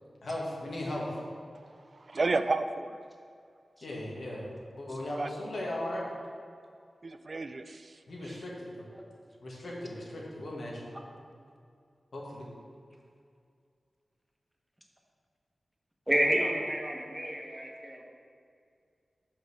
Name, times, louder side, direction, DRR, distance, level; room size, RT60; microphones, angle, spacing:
voice 1, 0.2-1.2 3.8-4.5 4.8-6.0 8.1-8.8 9.4-10.9 12.1-12.5, left 1 dB, 80° left, -4 dB, 1.7 m, -37 dB
voice 2, 1.9-3.0 5.2-5.3 7.0-8.4, right 3 dB, 50° right, 10 dB, 0.3 m, -32 dB
voice 3, 16.1-18.0, right 1 dB, 10° right, 0 dB, 1.2 m, -29 dB
5.5 x 5.5 x 6.3 m, 2.3 s
wide cardioid pair, 65°, 0 cm